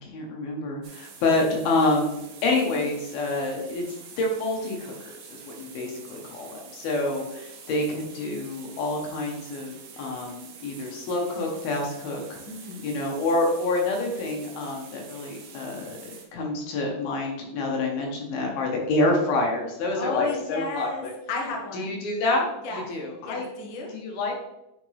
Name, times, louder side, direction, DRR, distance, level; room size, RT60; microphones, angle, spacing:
voice 1, 0.0-3.8 4.2-12.4 12.8-21.1 21.7-23.5 23.9-24.3, left 2 dB, 85° left, 0 dB, 3.3 m, -27 dB
sound 1, 0.8-16.2, right 5 dB, 70° right, 1.5 m, -46 dB
voice 2, 12.5-12.9 20.0-21.9 22.6-22.8 23.2-23.9, left 4 dB, 65° left, 0 dB, 1.1 m, -33 dB
9.3 x 4.4 x 3.4 m, 0.87 s
omnidirectional pair, 4.3 m